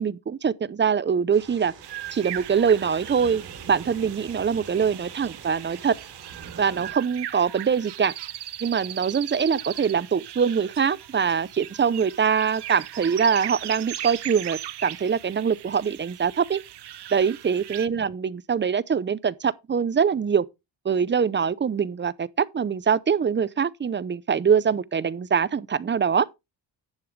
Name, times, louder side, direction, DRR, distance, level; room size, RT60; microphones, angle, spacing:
voice 1, 0.0-1.7 2.1-5.9 6.6-8.1 8.6-16.6 17.1-20.4 20.8-26.3, right 6 dB, 25° right, 0.5 m, -23 dB
sound 1, 1.3-6.9, right 6 dB, 85° right, 3.3 m, -44 dB
sound 2, 1.8-17.9, right 12 dB, 65° right, 0.9 m, -38 dB
10.5 x 8.5 x 3.2 m
cardioid pair, 105°, 43 cm